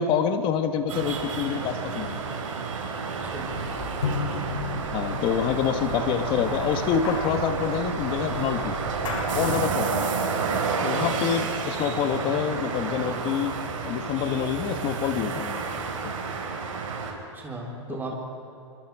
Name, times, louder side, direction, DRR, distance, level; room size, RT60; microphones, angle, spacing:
voice 1, 0.0-2.2 4.9-8.7 9.3-10.1 10.8-13.6 13.8-15.6 16.0-16.1 17.9-18.1, left 8 dB, 30° left, 8 dB, 1.6 m, -27 dB
sound 1, 0.9-17.1, right 5 dB, 70° right, 5.4 m, -30 dB
voice 2, 3.1-3.5 15.7-15.9 17.3-18.2, right 3 dB, 10° right, -1 dB, 4.1 m, -37 dB
sound 2, 3.2-9.7, left 4 dB, 70° left, 7.3 m, -34 dB
28.0 x 24.5 x 5.0 m, 2.9 s
hypercardioid pair, 145°, 17 cm